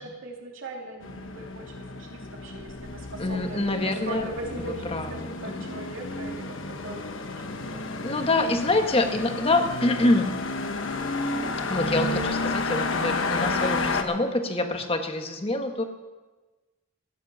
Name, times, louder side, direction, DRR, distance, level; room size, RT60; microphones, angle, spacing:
voice 1, 0.0-6.6 6.8-7.3 7.7-7.8 12.2-12.4 13.0-13.3, right 2 dB, 70° right, -1 dB, 3.0 m, -39 dB
sound 1, 1.0-14.0, left 3 dB, 65° left, 1.2 m, -31 dB
voice 2, 3.2-4.3 4.6-5.7 8.0-10.3 11.7-15.8, left 2 dB, 30° left, 5 dB, 1.3 m, -26 dB
15.0 x 10.5 x 6.9 m, 1.2 s
head